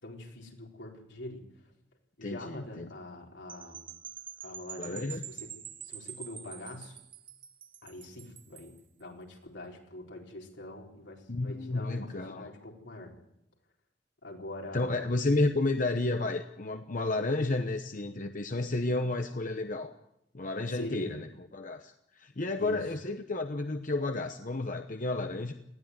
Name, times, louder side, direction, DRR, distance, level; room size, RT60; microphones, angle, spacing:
voice 1, 0.0-1.4 2.2-3.9 4.4-5.5 5.8-7.0 7.8-13.1 14.2-15.1 20.7-21.1 22.6-22.9, left 1 dB, 80° left, 0 dB, 4.4 m, -43 dB
voice 2, 2.2-2.9 4.8-5.2 11.3-12.5 14.7-19.9 20.3-25.5, left 2 dB, 45° left, 6 dB, 1.0 m, -31 dB
sound 1, 3.5-8.8, right 9 dB, 30° right, 0.8 m, -46 dB
19.5 x 15.0 x 9.5 m, 0.81 s
head